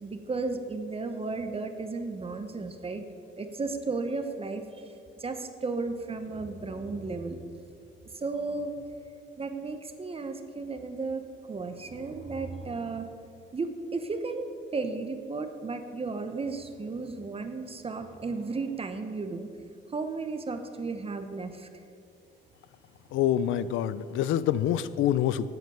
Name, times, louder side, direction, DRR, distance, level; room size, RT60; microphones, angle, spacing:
voice 1, 0.0-3.0 3.4-7.4 8.1-8.9 9.4-13.1 13.5-14.5 14.7-19.5 19.9-21.7, right 3 dB, 30° right, 7 dB, 0.8 m, -34 dB
voice 2, 23.1-25.5, left 11 dB, 85° left, 17 dB, 0.4 m, -26 dB
9.1 x 7.4 x 5.6 m, 2.5 s
cardioid pair, 90°, 20 cm